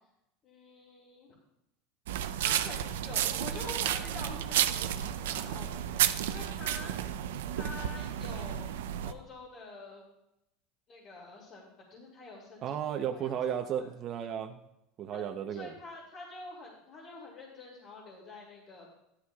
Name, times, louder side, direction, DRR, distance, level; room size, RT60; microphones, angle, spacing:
voice 1, 0.4-1.3 2.4-6.9 7.6-8.7 9.0-10.0 10.9-12.8 13.1-13.4 13.8-13.9 15.1-18.9, left 3 dB, 40° left, -3 dB, 2.5 m, -47 dB
Footsteps on path - some fallen leaves, 2.1-9.1, right 11 dB, 90° right, 0.5 m, -32 dB
voice 2, 12.6-14.6 15.0-15.7, right 9 dB, 45° right, 4 dB, 0.7 m, -34 dB
12.5 x 11.5 x 2.4 m, 0.84 s
supercardioid pair, 120°, 0 cm